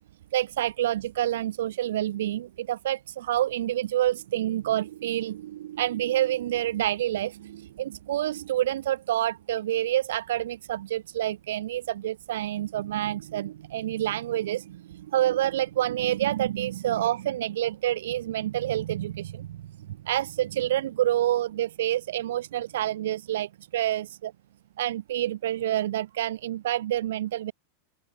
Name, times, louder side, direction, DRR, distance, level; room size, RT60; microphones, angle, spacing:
voice 1, 0.3-19.6 20.0-24.3 24.8-27.5, right 13 dB, 60° right, 2.6 m, -28 dB
open air
figure-of-eight pair, 90°, 0 cm